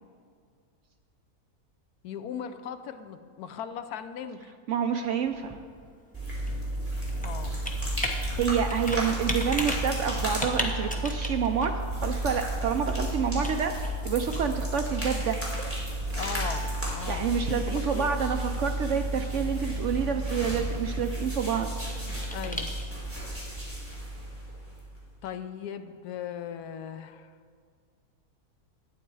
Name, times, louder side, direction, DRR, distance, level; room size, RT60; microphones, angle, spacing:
voice 1, 2.0-4.5 7.2-7.6 16.1-18.2 22.3-22.7 25.2-27.3, left 8 dB, 75° left, 10 dB, 1.1 m, -38 dB
voice 2, 4.7-5.6 8.2-15.4 17.1-21.7, right 7 dB, 70° right, 6 dB, 0.7 m, -28 dB
Computer keyboard, 4.9-23.2, left 1 dB, 5° left, 0.7 m, -40 dB
sound 1, 6.1-25.0, right 1 dB, 10° right, 3.1 m, -32 dB
sound 2, 18.9-21.8 22.1-22.2, right 1 dB, 35° right, 1.5 m, -49 dB
12.0 x 9.0 x 4.6 m, 2.1 s
omnidirectional pair, 1.7 m